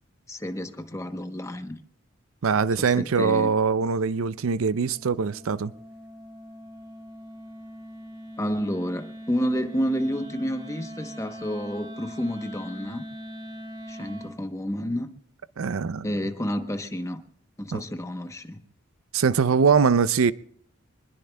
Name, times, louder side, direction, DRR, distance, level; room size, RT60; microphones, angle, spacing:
voice 1, 0.3-1.8 2.8-3.5 8.4-13.0 13.9-15.1 16.0-17.2 17.6-18.6, equal, 15° left, 0.8 m, -30 dB
voice 2, 2.4-5.7 15.6-16.1 17.7-17.8 19.1-20.3, right 5 dB, 80° right, 0.5 m, -22 dB
Wind instrument woodwind instrument, 2.9-14.5, equal, 20° right, 0.8 m, -42 dB
25.0 x 21.0 x 2.2 m
head